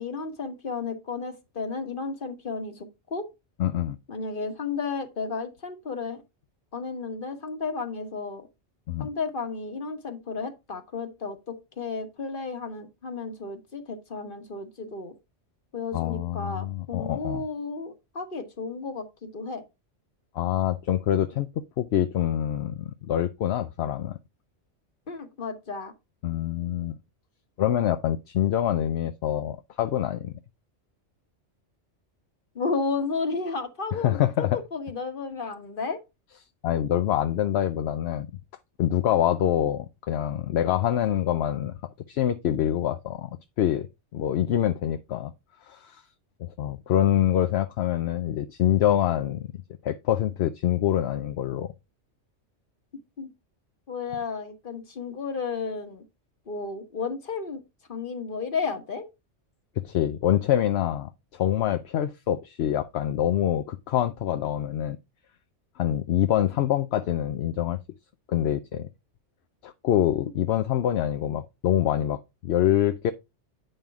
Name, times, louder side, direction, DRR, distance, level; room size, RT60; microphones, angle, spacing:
voice 1, 0.0-3.3 4.1-6.2 6.7-8.5 9.0-15.1 15.7-19.6 25.1-25.9 32.5-36.0 53.2-53.3 53.9-56.0 56.5-57.6 57.9-59.1, left 4 dB, 45° left, 1.5 m, -33 dB
voice 2, 3.6-4.0 8.9-9.1 15.9-17.4 20.3-21.5 21.8-24.2 26.2-26.9 27.6-30.3 34.0-34.6 36.6-38.3 38.8-41.8 42.1-43.9 44.1-45.3 45.6-46.0 46.4-49.5 49.8-51.7 59.8-65.0 65.8-67.8 68.3-68.9 69.6-73.1, left 11 dB, 65° left, 0.8 m, -25 dB
8.9 x 5.5 x 3.5 m
omnidirectional pair, 1.3 m